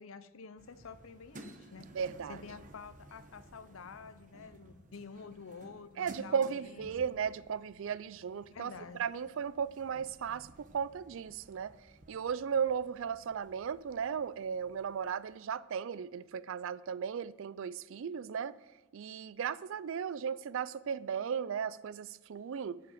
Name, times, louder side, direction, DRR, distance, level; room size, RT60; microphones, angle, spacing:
voice 1, 0.0-1.9 2.3-7.1 8.5-9.0, left 5 dB, 75° left, 0.6 m, -49 dB
sound 1, 0.6-15.4, right 1 dB, 40° right, 1.0 m, -56 dB
voice 2, 1.9-2.4 6.0-8.7 9.0-11.7 12.1-18.6 18.9-22.8, right 7 dB, 65° right, 0.4 m, -36 dB
12.5 x 5.8 x 7.7 m
head